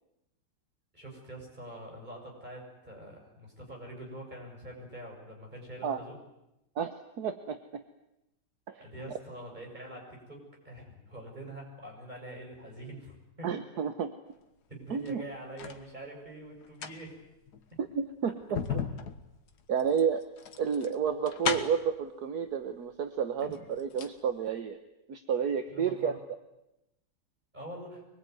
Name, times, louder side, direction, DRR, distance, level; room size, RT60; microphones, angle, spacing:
voice 1, 0.9-6.2 8.8-13.5 14.7-17.2 17.7-17.8 21.4-21.5 23.4-23.5 25.7-26.2 27.5-28.0, right 1 dB, 25° right, 0 dB, 7.2 m, -45 dB
voice 2, 6.8-7.8 8.7-8.9 13.4-14.1 14.9-15.2 17.8-18.6 19.7-20.3 20.6-24.8 25.1-26.1, right 7 dB, 65° right, 8 dB, 1.6 m, -31 dB
sound 1, 14.9-15.8 16.6-22.0 22.9-23.0 23.4-24.2 24.5-24.6, left 7 dB, 65° left, 2.0 m, -37 dB
24.0 x 22.0 x 9.5 m, 0.90 s
omnidirectional pair, 1.9 m